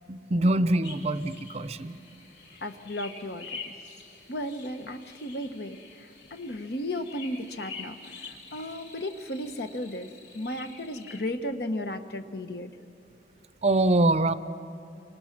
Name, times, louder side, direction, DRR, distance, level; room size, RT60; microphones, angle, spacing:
voice 1, 0.1-2.0 13.6-14.3, right 2 dB, 35° right, 13 dB, 0.6 m, -24 dB
sound 1, 0.8-11.3, left 4 dB, 80° left, 3.0 m, -46 dB
voice 2, 2.6-3.7 4.3-5.8 6.3-8.0 8.3-12.7, left 1 dB, 60° left, 8 dB, 1.1 m, -34 dB
30.0 x 25.5 x 6.0 m, 2.8 s
head